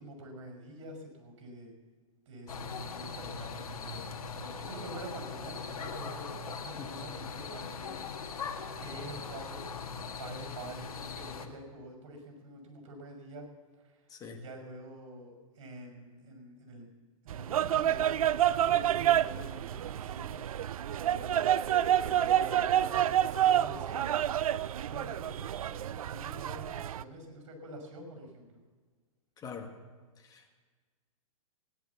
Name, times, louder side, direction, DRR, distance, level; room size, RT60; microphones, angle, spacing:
voice 1, 0.0-1.7 2.3-4.1 4.3-8.4 8.8-9.6 10.2-13.4 13.8-16.9 17.2-20.7 21.0-21.5 22.0-28.6, right 1 dB, 55° right, 3 dB, 5.8 m, -47 dB
sound 1, 2.5-11.5, left 5 dB, 85° left, 1.7 m, -40 dB
voice 2, 6.8-6.9 14.1-14.4 29.4-29.7 30.3-30.5, left 6 dB, 20° left, 3 dB, 1.7 m, -43 dB
sound 2, 17.3-27.0, right 11 dB, 75° right, 0.5 m, -28 dB
16.5 x 11.0 x 7.1 m, 1.4 s
hypercardioid pair, 135°, 18 cm